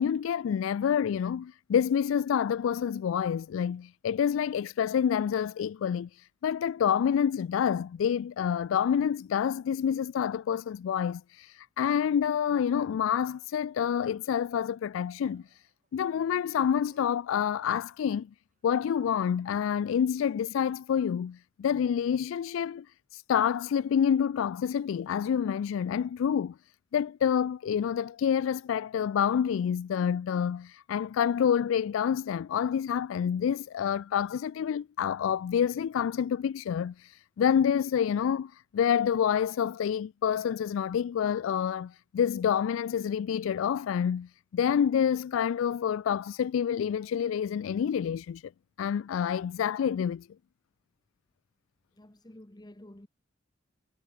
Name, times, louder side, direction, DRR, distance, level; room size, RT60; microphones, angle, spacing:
voice 1, 0.0-15.4 15.9-18.3 18.6-22.9 23.1-26.5 26.9-48.4 48.8-50.3, left 8 dB, 75° left, 0.3 m, -28 dB
Dog, 11.4-11.6 11.8-12.6 13.2-19.9, right 3 dB, 40° right, 2.8 m, -67 dB
voice 2, 51.9-53.1, left 1 dB, 20° left, 1.3 m, -50 dB
head